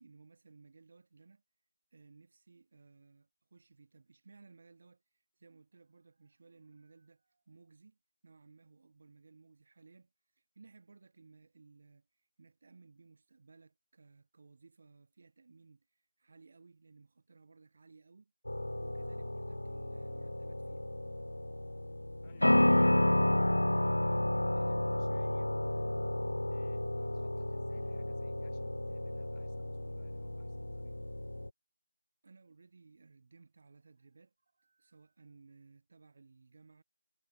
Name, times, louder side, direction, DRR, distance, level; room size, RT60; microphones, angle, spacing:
voice 1, 0.0-1.4 1.9-8.0 8.2-18.3 18.8-20.8 32.2-36.8, right 4 dB, 25° right, 5.8 m, -60 dB
sound 1, 18.4-31.5, left 1 dB, 60° left, 1.2 m, -32 dB
voice 2, 22.2-25.5 26.5-31.0, left 12 dB, 10° left, 7.5 m, -65 dB
figure-of-eight pair, 170°, 0 cm